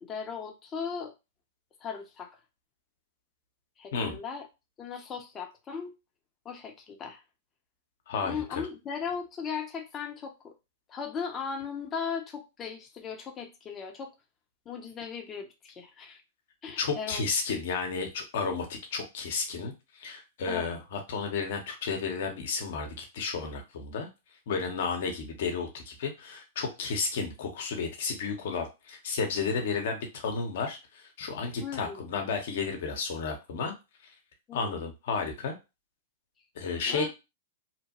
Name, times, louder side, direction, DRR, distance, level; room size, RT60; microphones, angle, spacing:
voice 1, 0.0-1.1 1.8-2.3 3.8-4.4 4.8-5.9 6.4-7.2 8.2-10.5 10.9-14.1 14.7-16.2 16.6-17.2 20.5-20.7 31.6-32.1 34.5-34.8 36.9-37.1, left 6 dB, 25° left, 3 dB, 0.8 m, -37 dB
voice 2, 8.1-8.6 16.8-24.1 24.5-33.7 34.5-35.6 36.6-37.1, left 5 dB, 65° left, 4 dB, 0.9 m, -32 dB
2.9 x 2.1 x 2.9 m, 0.26 s
hypercardioid pair, 115°, 0 cm